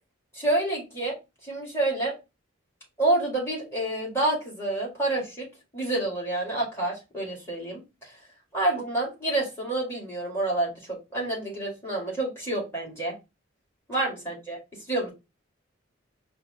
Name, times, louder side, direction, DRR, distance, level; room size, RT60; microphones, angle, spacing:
voice 1, 0.3-1.2 1.4-2.1 3.0-5.5 5.7-8.2 8.5-13.1 13.9-14.6 14.9-15.1, right 2 dB, 15° left, -5 dB, 2.1 m, -28 dB
4.8 x 2.1 x 4.6 m, 0.26 s
head